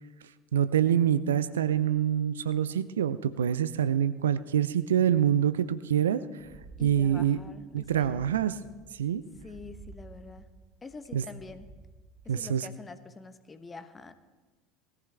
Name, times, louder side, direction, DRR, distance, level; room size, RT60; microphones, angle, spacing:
voice 1, 0.5-6.2 6.8-7.4 7.7-8.6 9.0-9.2 11.1-11.2 12.3-12.7, right 9 dB, 70° right, 14 dB, 0.5 m, -26 dB
sound 1, 6.4-12.5, right 4 dB, 45° right, 1.3 m, -52 dB
voice 2, 6.8-8.2 9.4-10.5 10.8-11.7 12.2-14.1, left 4 dB, 20° left, 11 dB, 1.1 m, -46 dB
20.0 x 14.5 x 3.4 m, 1.3 s
figure-of-eight pair, 70°, 0 cm